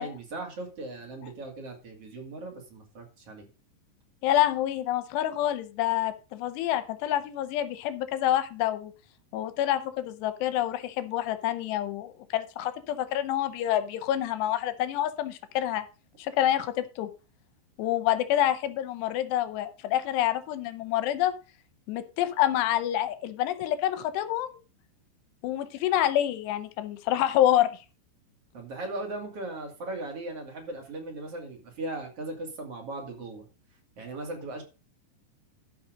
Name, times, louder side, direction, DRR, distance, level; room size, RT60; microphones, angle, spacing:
voice 1, 0.0-3.5 28.5-33.4 34.0-34.6, right 2 dB, 40° right, 1 dB, 2.5 m, -38 dB
voice 2, 4.2-8.9 9.3-15.8 16.2-17.1 17.8-21.3 21.9-24.6 25.4-27.8, left 12 dB, 75° left, 11 dB, 2.7 m, -27 dB
13.0 x 5.6 x 5.1 m, 0.32 s
omnidirectional pair, 5.4 m